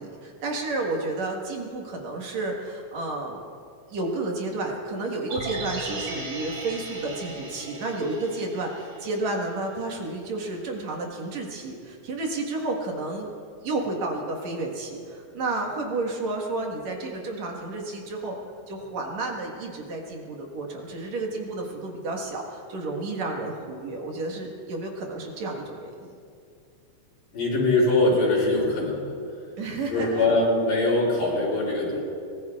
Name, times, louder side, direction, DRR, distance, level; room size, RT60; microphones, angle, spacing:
voice 1, 0.0-3.4 3.9-13.3 13.6-18.4 18.7-26.2 29.6-30.3, right 2 dB, 60° right, 0 dB, 2.7 m, -31 dB
sound 1, 5.3-9.5 9.8-9.9, right 2 dB, 80° right, 4.0 m, -36 dB
voice 2, 27.3-29.1 29.9-32.0, left 2 dB, 70° left, -4 dB, 4.7 m, -22 dB
23.5 x 19.5 x 2.4 m, 2.4 s
omnidirectional pair, 3.8 m